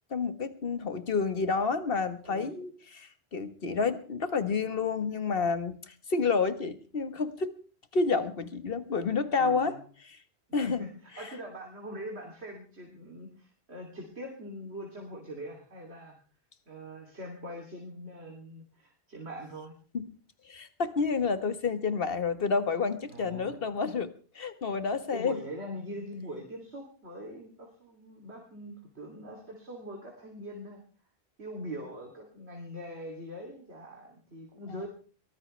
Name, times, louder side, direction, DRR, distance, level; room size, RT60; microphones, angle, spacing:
voice 1, 0.1-7.6 7.9-9.7 10.5-10.8 19.9-20.1 20.5-25.4 34.7-34.8, left 4 dB, 60° left, 11 dB, 1.6 m, -29 dB
voice 2, 9.4-9.8 10.6-16.2 16.7-19.7 23.1-23.6 25.1-30.8 31.4-34.9, equal, 80° right, 0 dB, 3.4 m, -42 dB
23.0 x 18.5 x 3.3 m, 0.41 s
omnidirectional pair, 1.1 m